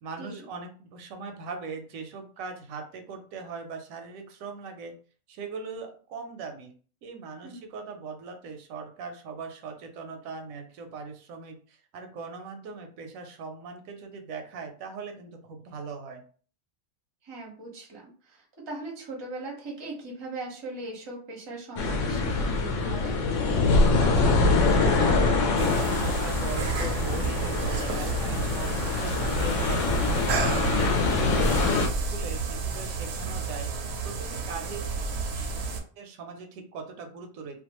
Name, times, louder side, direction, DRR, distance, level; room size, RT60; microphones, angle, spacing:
voice 1, 0.0-5.0 5.3-6.7 7.0-16.2 24.0-24.4 24.7-28.7 29.0-30.6 31.0-33.7 34.0-35.0 36.0-37.6, right 4 dB, 85° right, 5 dB, 1.0 m, -40 dB
voice 2, 17.2-23.2 31.6-31.7, right 2 dB, 25° right, -1 dB, 0.6 m, -39 dB
sound 1, 21.8-31.9, left 3 dB, 70° left, 0.9 m, -24 dB
sound 2, 25.6-35.8, right 4 dB, 65° right, 0.7 m, -31 dB
2.5 x 2.2 x 2.8 m, 0.42 s
omnidirectional pair, 1.4 m